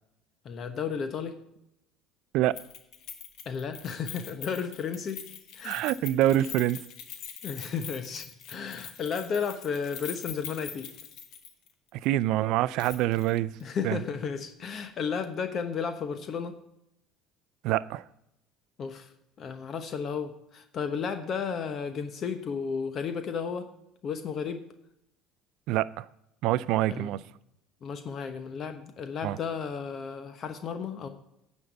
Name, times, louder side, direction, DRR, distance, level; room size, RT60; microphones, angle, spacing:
voice 1, 0.4-1.4 3.4-5.2 5.5-5.8 7.4-10.9 13.6-16.6 18.8-19.1 19.4-23.7 24.0-24.6 26.9-27.1 27.8-31.1, left 6 dB, 50° left, 1.0 m, -33 dB
Keys jangling, 2.5-11.7 12.0-12.1 12.8-13.3 13.6-13.7, left 8 dB, 65° left, 1.3 m, -43 dB
voice 2, 5.6-6.8 12.0-13.5 13.8-14.0 17.6-18.0 25.7-26.1 26.4-27.2 29.2-29.4, right 14 dB, 70° right, 0.4 m, -25 dB
9.7 x 5.4 x 7.9 m
hypercardioid pair, 80°, 0 cm